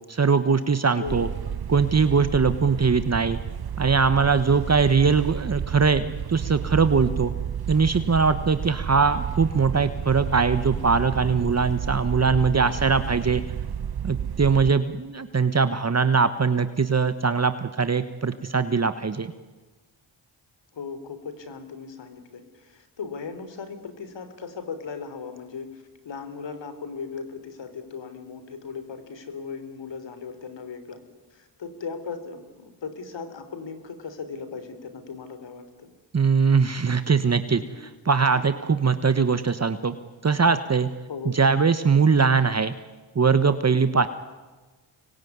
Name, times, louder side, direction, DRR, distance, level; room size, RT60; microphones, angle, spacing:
voice 1, 0.1-1.3 1.7-3.4 3.8-6.0 6.3-7.3 7.7-13.4 14.0-19.3 36.1-39.9 40.2-40.9 41.2-42.7 43.1-44.1, right 5 dB, 35° right, 11 dB, 1.4 m, -21 dB
voice 2, 1.0-1.8 20.7-31.0 31.3-35.9 37.5-37.9 38.3-38.4 41.1-41.4, left 5 dB, 70° left, 10 dB, 3.9 m, -38 dB
sound 1, 1.1-14.7, right 8 dB, 50° right, 1.2 m, -31 dB
25.0 x 22.0 x 9.7 m, 1.3 s
cardioid pair, 55°, 46 cm